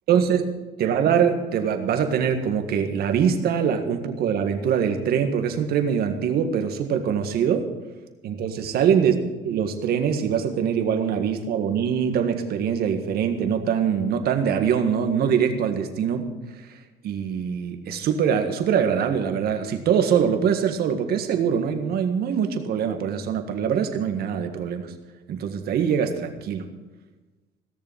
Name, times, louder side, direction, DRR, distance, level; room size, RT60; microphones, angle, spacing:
voice 1, 0.1-0.5 0.8-7.7 8.2-9.1 9.4-16.3 17.0-24.9 25.3-26.7, right 7 dB, 70° right, 7 dB, 1.8 m, -23 dB
17.0 x 7.0 x 8.7 m, 1.2 s
cardioid pair, 110°, 17 cm